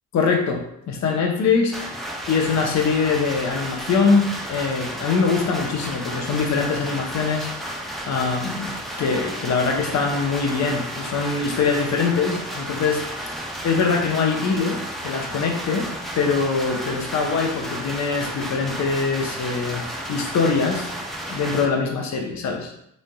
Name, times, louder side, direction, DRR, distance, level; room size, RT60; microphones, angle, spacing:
voice 1, 0.1-1.8 2.3-7.5 8.1-8.7 9.0-13.3 13.6-20.9 21.3-22.7, left 5 dB, 55° left, 2 dB, 0.7 m, -23 dB
sound 1, 1.7-21.7, equal, ahead, 0.4 m, -32 dB
3.2 x 2.5 x 2.2 m, 0.74 s
cardioid pair, 70°, 33 cm